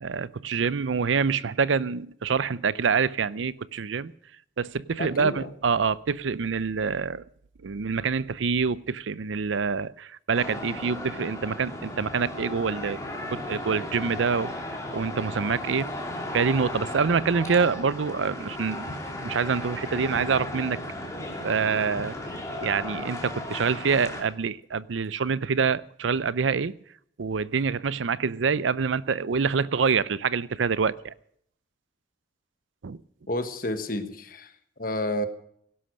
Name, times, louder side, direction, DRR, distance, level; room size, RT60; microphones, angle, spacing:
voice 1, 0.0-4.1 4.6-7.2 7.6-13.0 13.3-14.7 14.9-15.9 16.3-18.9 19.2-20.8 21.4-22.2 22.6-26.7 27.2-31.1 32.8-33.0, right 5 dB, 90° right, 19 dB, 0.5 m, -26 dB
voice 2, 5.0-5.5 33.3-34.5 34.8-35.3, left 1 dB, 50° left, 9 dB, 1.3 m, -30 dB
sound 1, 10.3-24.2, left 1 dB, 15° left, 2.8 m, -35 dB
17.0 x 11.0 x 6.4 m, 0.68 s
head